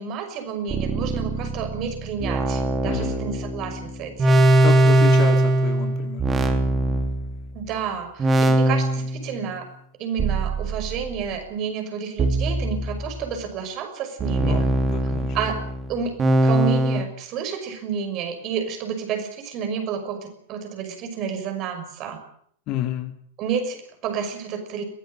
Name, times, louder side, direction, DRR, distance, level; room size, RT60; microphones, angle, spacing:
voice 1, 0.0-4.5 7.5-9.7 10.0-14.7 15.3-15.6 15.9-22.2 23.4-24.8, right 7 dB, 40° right, 6 dB, 6.0 m, -30 dB
sound 1, 0.7-7.7 8.2-9.3 10.2-11.4 12.2-13.4 14.2-17.0, right 1 dB, 20° right, 3.2 m, -21 dB
voice 2, 2.8-3.2 4.6-6.5 14.4-15.3 22.7-23.1, left 11 dB, 40° left, 7 dB, 2.6 m, -30 dB
22.5 x 17.0 x 8.8 m, 0.63 s
figure-of-eight pair, 90°, 0 cm